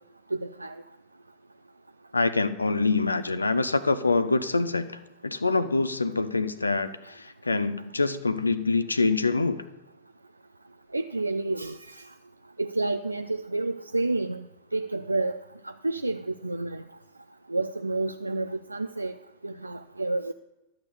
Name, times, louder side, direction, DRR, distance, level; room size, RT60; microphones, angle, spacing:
voice 1, 0.3-0.8 10.9-12.1 12.6-14.4 14.7-16.8 17.5-19.1 19.4-20.3, right 2 dB, 85° right, 9 dB, 0.3 m, -30 dB
voice 2, 2.1-4.9 5.2-9.6, left 3 dB, 80° left, 13 dB, 0.5 m, -25 dB
12.0 x 6.5 x 6.8 m, 0.96 s
figure-of-eight pair, 90°, 0 cm